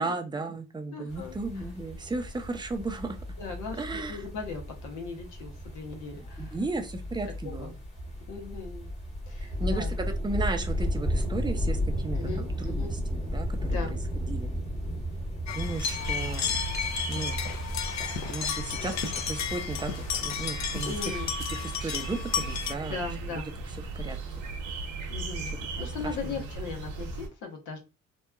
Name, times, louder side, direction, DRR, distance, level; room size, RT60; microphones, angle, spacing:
voice 1, 0.0-3.2 3.8-4.2 6.4-7.7 9.4-13.8 14.3-14.5 15.5-16.5 17.1-17.4 18.3-19.9 20.2-20.9 21.5-23.0 24.0-24.2 25.4-25.5 25.8-26.5, right 3 dB, 15° right, 5 dB, 0.5 m, -35 dB
voice 2, 0.9-1.6 3.4-6.6 7.4-7.7 8.3-8.9 9.3-9.9 12.1-12.9 13.7-14.0 20.8-21.3 22.9-23.5 25.1-27.8, left 5 dB, 85° left, 3 dB, 0.9 m, -38 dB
sound 1, 1.1-16.9, equal, 25° left, 1.1 m, -33 dB
sound 2, 15.5-22.7, left 7 dB, 65° left, 0.5 m, -33 dB
sound 3, 15.9-27.3, right 3 dB, 75° right, 0.8 m, -36 dB
2.9 x 2.2 x 2.2 m, 0.28 s
cardioid pair, 90°, 30 cm